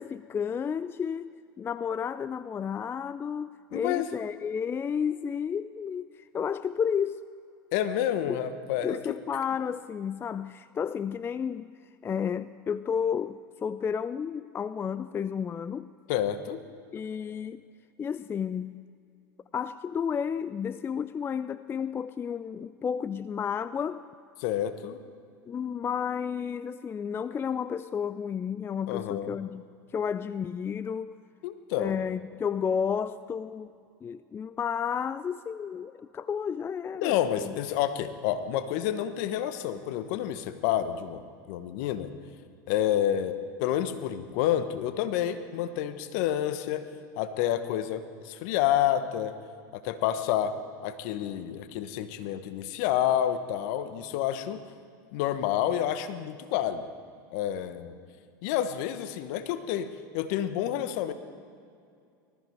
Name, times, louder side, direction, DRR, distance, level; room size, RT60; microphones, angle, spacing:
voice 1, 0.0-7.2 8.3-8.4 8.8-11.7 12.0-15.9 16.9-17.6 18.0-18.8 19.5-24.0 25.5-29.6 29.9-31.1 31.8-33.7 34.0-37.5, left 7 dB, 20° left, 15 dB, 0.3 m, -32 dB
voice 2, 3.7-4.1 7.7-9.2 16.1-16.6 24.4-25.0 28.9-29.4 31.4-32.0 37.0-42.1 42.7-46.8 47.2-49.3 49.7-50.6 50.8-54.6 55.1-56.8 57.3-58.0 58.4-59.9 60.1-61.1, left 11 dB, 65° left, 11 dB, 1.1 m, -29 dB
20.0 x 13.5 x 4.7 m, 2.4 s
hypercardioid pair, 90°, 10 cm